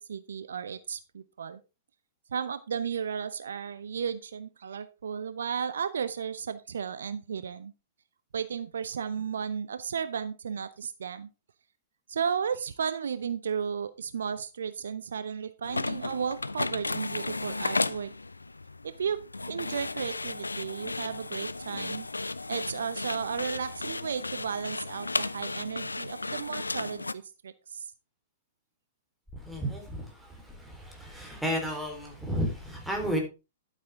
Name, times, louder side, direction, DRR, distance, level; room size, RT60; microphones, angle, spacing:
voice 1, 0.1-1.6 2.3-7.7 8.3-11.3 12.1-18.1 18.8-19.2 19.5-22.1 22.5-27.9, right 7 dB, 65° right, 14 dB, 0.7 m, -34 dB
sound 1, 15.6-27.1, left 3 dB, 85° left, 0.5 m, -34 dB
voice 2, 29.3-33.2, equal, 5° right, 1 dB, 4.0 m, -33 dB
11.5 x 8.5 x 3.6 m, 0.30 s
figure-of-eight pair, 110°, 0 cm